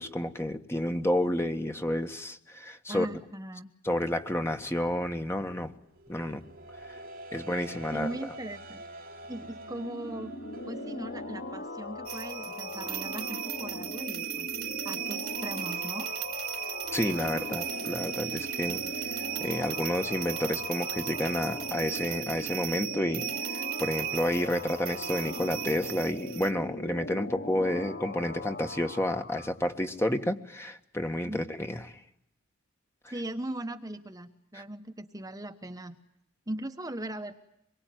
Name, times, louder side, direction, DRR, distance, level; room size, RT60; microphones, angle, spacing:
voice 1, 0.0-3.1 3.8-5.7 6.1-6.4 6.9-7.0 7.3-8.1 16.9-31.9 34.5-34.6, left 1 dB, 10° left, 6 dB, 1.5 m, -30 dB
voice 2, 2.9-3.7 7.9-8.8 9.3-10.3 10.7-14.5 14.8-16.1 31.3-31.4 33.1-36.0 36.5-37.3, right 1 dB, 15° right, 6 dB, 1.1 m, -39 dB
sound 1, 5.5-21.9, right 1 dB, 40° right, 3.1 m, -48 dB
sound 2, 9.6-29.5, left 2 dB, 45° left, 4.7 m, -40 dB
sound 3, 12.1-26.5, right 12 dB, 75° right, 2.9 m, -36 dB
25.5 x 23.5 x 9.3 m, 0.76 s
head